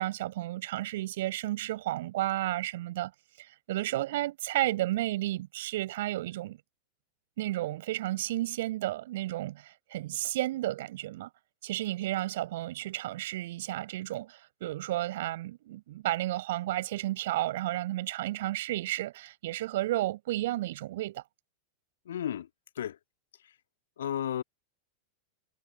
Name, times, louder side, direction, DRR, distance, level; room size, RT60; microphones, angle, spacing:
voice 1, 0.0-3.1 3.4-6.6 7.4-11.3 11.6-21.2, right 15 dB, 55° right, 7.8 m, -32 dB
voice 2, 22.1-22.5 22.8-23.0 23.4-23.5 24.0-24.4, left 10 dB, 65° left, 1.8 m, -33 dB
figure-of-eight pair, 90°, 0 cm